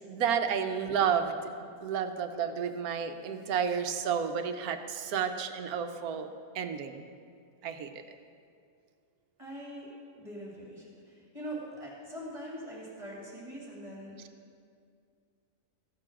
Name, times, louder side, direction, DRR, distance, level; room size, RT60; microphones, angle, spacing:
voice 1, 0.0-6.3 6.5-7.0 7.6-8.0, right 7 dB, 70° right, 7 dB, 1.2 m, -31 dB
voice 2, 9.4-9.9 10.1-14.2, right 1 dB, 20° right, -5 dB, 2.5 m, -42 dB
15.0 x 6.8 x 6.0 m, 2.3 s
omnidirectional pair, 1.6 m